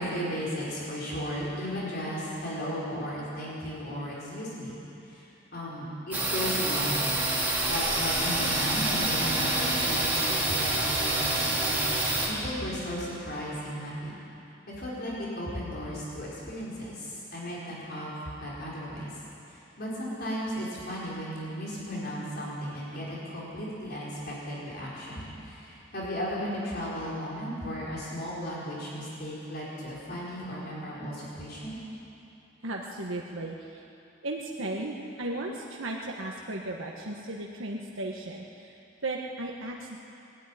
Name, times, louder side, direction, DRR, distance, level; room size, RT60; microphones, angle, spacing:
voice 1, 0.0-4.7 5.0-7.3 7.7-14.2 14.7-19.1 19.5-31.8, equal, 50° left, -6 dB, 4.9 m, -35 dB
sound 1, 6.1-12.3, right 2 dB, 10° right, 3.1 m, -27 dB
voice 2, 32.6-33.8 34.2-38.7 39.0-40.0, right 2 dB, 80° right, -1 dB, 1.5 m, -35 dB
21.5 x 13.5 x 10.0 m, 2.8 s
head